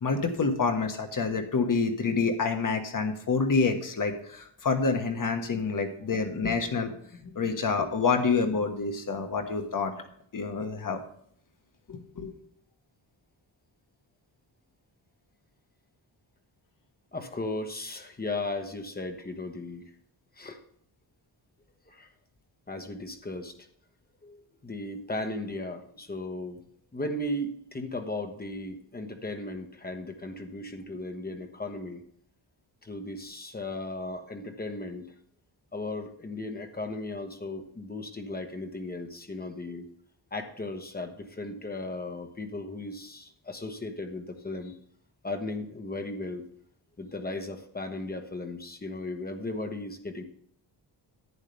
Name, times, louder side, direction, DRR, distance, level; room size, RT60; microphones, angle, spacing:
voice 1, 0.0-6.9 7.2-10.1 10.3-11.0 11.9-12.3, left 4 dB, 45° left, 5 dB, 1.4 m, -27 dB
voice 2, 17.1-19.8 20.4-20.6 21.9-22.1 22.7-23.5 24.2-26.6 26.9-32.0 32.8-35.1 35.7-39.8 40.3-44.7 45.2-46.5 47.0-50.2, left 2 dB, 20° left, 5 dB, 1.0 m, -36 dB
11.0 x 9.1 x 3.4 m, 0.65 s
wide cardioid pair, 165°, 45 cm